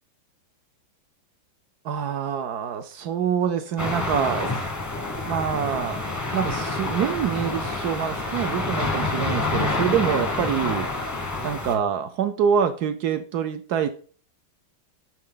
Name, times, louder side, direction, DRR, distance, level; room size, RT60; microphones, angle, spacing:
voice 1, 1.8-4.6 5.3-6.0 6.3-10.9 11.4-13.9, right 8 dB, 70° right, 10 dB, 1.0 m, -25 dB
sound 1, 3.8-11.8, left 2 dB, 15° left, 0.5 m, -28 dB
11.0 x 4.1 x 3.8 m, 0.43 s
omnidirectional pair, 2.1 m